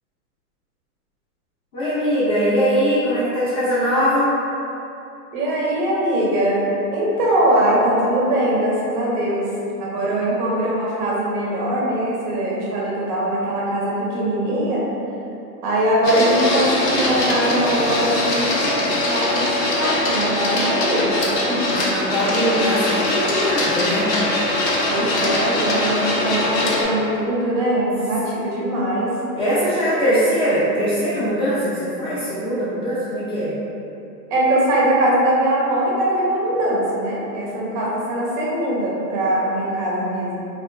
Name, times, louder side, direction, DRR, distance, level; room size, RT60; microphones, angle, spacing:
voice 1, 1.7-4.4 21.6-24.1 29.3-33.6, equal, 30° left, -12 dB, 0.5 m, -21 dB
voice 2, 5.3-6.6 6.9-9.4 9.8-14.8 15.6-21.2 21.5-21.7 24.9-29.1 34.3-40.4, right 1 dB, 30° right, -5 dB, 0.5 m, -21 dB
Printer, 16.0-26.8, left 1 dB, 75° left, 0.8 m, -22 dB
2.7 x 2.2 x 2.4 m, 2.8 s
hypercardioid pair, 135°, 49 cm